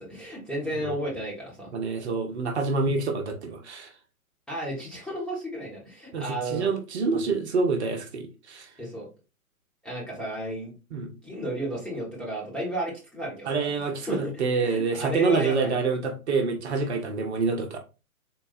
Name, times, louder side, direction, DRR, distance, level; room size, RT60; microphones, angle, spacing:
voice 1, 0.0-1.7 4.5-6.7 8.8-9.1 9.8-13.7 14.0-15.7, right 1 dB, ahead, 1.0 m, -33 dB
voice 2, 1.7-3.9 6.1-8.7 10.9-11.1 13.5-17.8, right 4 dB, 50° right, 0.9 m, -27 dB
3.9 x 2.2 x 4.1 m
figure-of-eight pair, 120°, 43 cm